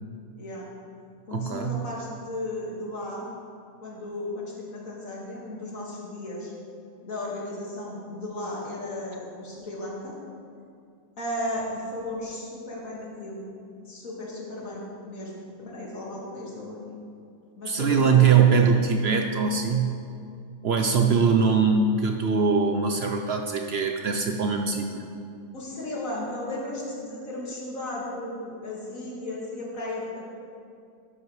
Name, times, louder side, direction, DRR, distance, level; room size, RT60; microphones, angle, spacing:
voice 1, 0.4-0.7 1.3-3.3 3.8-6.5 7.0-10.1 11.2-13.4 13.9-16.8 17.6-18.6 25.5-30.3, left 1 dB, 70° left, -4 dB, 2.3 m, -35 dB
voice 2, 1.3-1.8 17.7-20.0 20.6-25.0, right 5 dB, 60° right, 4 dB, 0.8 m, -22 dB
11.5 x 10.0 x 3.2 m, 2.4 s
omnidirectional pair, 1.5 m